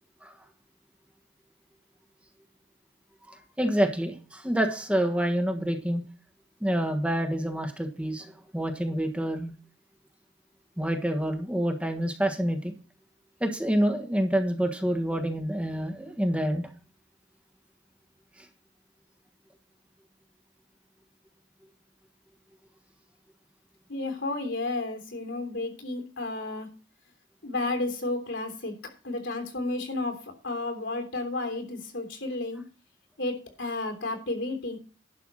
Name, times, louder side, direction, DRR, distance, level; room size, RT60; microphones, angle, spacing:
voice 1, 3.3-6.0 6.6-9.5 10.8-12.7 13.4-16.7, right 1 dB, 5° right, 4 dB, 1.4 m, -27 dB
voice 2, 23.9-26.7 27.4-28.8 29.0-32.6 33.2-34.8, left 2 dB, 75° left, 5 dB, 3.4 m, -32 dB
11.5 x 5.8 x 6.3 m, 0.35 s
head